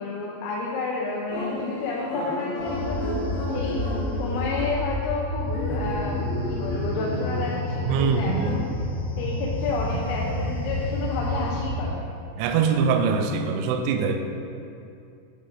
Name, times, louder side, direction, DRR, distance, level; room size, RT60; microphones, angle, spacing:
voice 1, 0.0-3.1 3.5-3.8 4.1-8.7 9.2-12.1, left 4 dB, 85° left, -3 dB, 3.3 m, -31 dB
sound 1, 1.3-11.7, left 1 dB, 60° left, 3.5 m, -29 dB
voice 2, 7.9-8.6 12.4-14.2, right 5 dB, 85° right, 5 dB, 2.8 m, -23 dB
8.8 x 3.6 x 4.9 m, 2.6 s
omnidirectional pair, 5.7 m